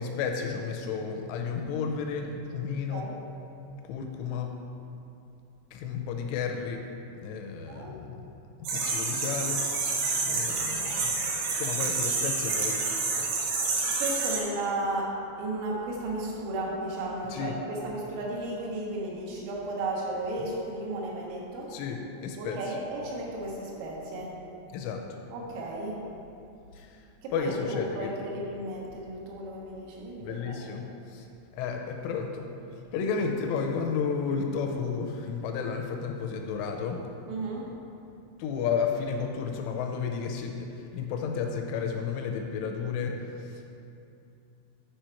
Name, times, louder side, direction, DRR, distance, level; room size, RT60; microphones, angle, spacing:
voice 1, 0.0-3.1 3.8-4.5 5.7-6.8 7.2-8.2 8.6-9.6 10.3-11.3 11.6-12.8 17.3-17.6 21.7-22.6 24.7-25.0 26.7-27.0 27.3-28.1 30.2-31.3 31.5-32.5 32.7-37.0 38.4-43.7, left 6 dB, 85° left, 3 dB, 2.8 m, -32 dB
sound 1, 8.6-14.4, right 4 dB, 70° right, 2.4 m, -28 dB
voice 2, 14.0-21.7 22.4-24.3 25.3-26.0 27.2-30.8 37.3-37.7, right 2 dB, 85° right, -3 dB, 4.0 m, -34 dB
9.0 x 5.0 x 4.4 m, 2.6 s
omnidirectional pair, 5.9 m